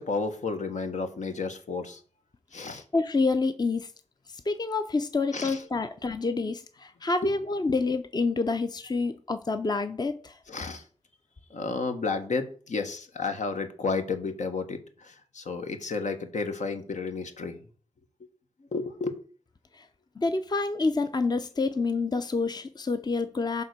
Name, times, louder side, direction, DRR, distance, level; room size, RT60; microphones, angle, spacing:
voice 1, 0.0-2.0 2.5-2.8 5.3-5.6 7.2-7.3 10.5-10.8 11.5-17.6 18.7-19.2, left 4 dB, 75° left, 1.3 m, -32 dB
voice 2, 2.7-3.9 4.3-10.4 19.7-19.9 20.2-23.6, left 3 dB, 35° left, 0.6 m, -28 dB
10.5 x 3.6 x 6.6 m
wide cardioid pair, 80°, 12 cm